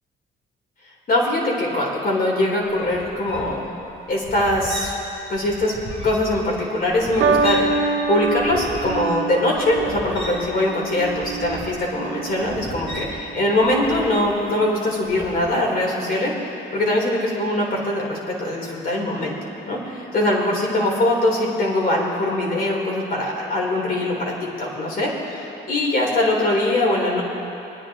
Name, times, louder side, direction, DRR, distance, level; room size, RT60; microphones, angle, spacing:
voice 1, 1.1-3.7 4.1-4.9 5.3-5.7 6.0-19.3 19.7-27.2, left 1 dB, 45° left, -3 dB, 3.8 m, -22 dB
sound 1, 2.6-7.8 8.0-14.6 15.0-15.4, left 1 dB, 65° left, 3.4 m, -36 dB
sound 2, 7.2-13.7 14.6-15.0, right 4 dB, 90° right, 1.2 m, -26 dB
24.0 x 10.0 x 3.7 m, 3.0 s
cardioid pair, 90°, 20 cm